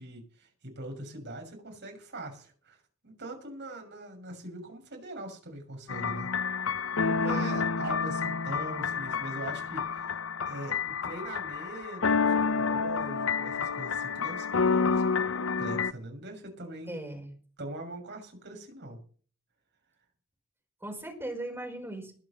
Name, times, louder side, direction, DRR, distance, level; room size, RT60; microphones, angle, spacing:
voice 1, 0.0-2.8 3.0-6.3 7.2-10.2 10.5-15.0 15.3-17.0 17.6-19.0, right 1 dB, 60° right, 3 dB, 6.8 m, -42 dB
sound 1, 5.9-15.9, left 5 dB, 75° left, 0.7 m, -29 dB
voice 2, 7.2-7.6 16.9-17.3 20.8-22.1, right 1 dB, 10° right, 2 dB, 4.7 m, -38 dB
21.0 x 7.0 x 7.1 m, 0.42 s
head